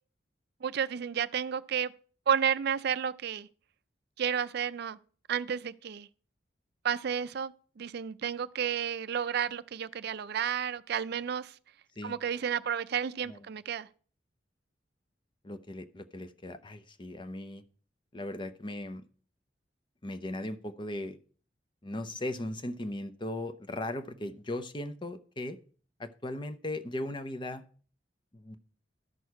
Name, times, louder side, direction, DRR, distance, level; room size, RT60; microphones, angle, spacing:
voice 1, 0.6-1.9 2.3-3.5 4.2-5.0 5.3-6.1 6.8-11.5 12.0-13.9, right 8 dB, 60° right, 0.4 m, -31 dB
voice 2, 15.4-17.6 18.1-19.0 20.0-21.2 21.8-25.6 26.0-27.6 28.3-28.6, left 1 dB, 25° left, 0.7 m, -38 dB
12.5 x 6.3 x 4.7 m
head